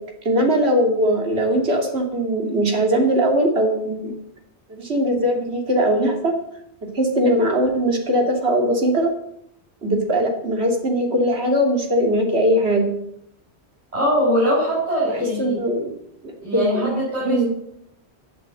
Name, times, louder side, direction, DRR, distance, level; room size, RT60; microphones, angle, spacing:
voice 1, 0.2-4.1 4.7-6.3 6.9-9.1 9.8-12.9 15.1-15.9 16.5-16.9 17.2-17.5, equal, 70° right, 1 dB, 2.8 m, -20 dB
voice 2, 13.9-15.6 16.4-17.5, equal, 35° right, -8 dB, 6.7 m, -21 dB
12.0 x 9.0 x 7.6 m, 0.75 s
omnidirectional pair, 1.1 m